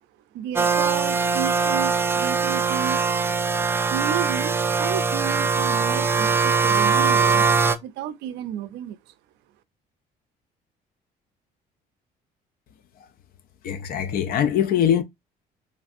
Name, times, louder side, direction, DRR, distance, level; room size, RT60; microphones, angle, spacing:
voice 1, 0.3-3.0 3.9-4.5 4.8-7.5 7.8-9.1, right 10 dB, 85° right, 0.4 m, -32 dB
sound 1, 0.6-7.8, right 5 dB, 15° right, 0.3 m, -21 dB
voice 2, 13.6-15.0, left 9 dB, 60° left, 0.4 m, -22 dB
3.2 x 2.5 x 2.4 m
cardioid pair, 110°, 17 cm